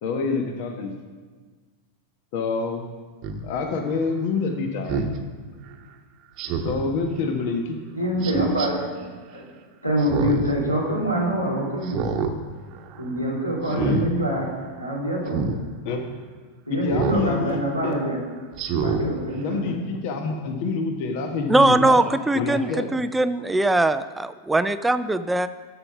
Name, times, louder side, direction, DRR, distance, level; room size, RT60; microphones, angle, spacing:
voice 1, 0.0-0.9 2.3-2.9 3.4-5.2 6.6-7.8 13.7-14.1 15.8-16.0 16.7-17.6 17.8-18.0 19.4-22.1 22.3-22.9, left 4 dB, 45° left, 4 dB, 1.1 m, -27 dB
Speech synthesizer, 3.2-3.4 4.9-5.2 6.4-6.9 8.2-8.7 10.0-10.5 10.9-11.0 11.8-12.3 12.7-13.0 13.7-14.1 15.3-15.6 16.9-17.3 17.7-17.9 18.5-19.0 19.5-19.6, right 5 dB, 40° right, 1.0 m, -26 dB
voice 2, 8.0-8.8 9.3-9.5 9.8-12.0 13.0-14.5 14.8-15.4 16.7-18.2 18.8-19.8, right 1 dB, 90° left, -3 dB, 2.7 m, -25 dB
voice 3, 21.5-25.5, right 2 dB, 10° right, 12 dB, 0.3 m, -21 dB
12.5 x 5.9 x 5.9 m, 1.5 s
figure-of-eight pair, 90°, 0 cm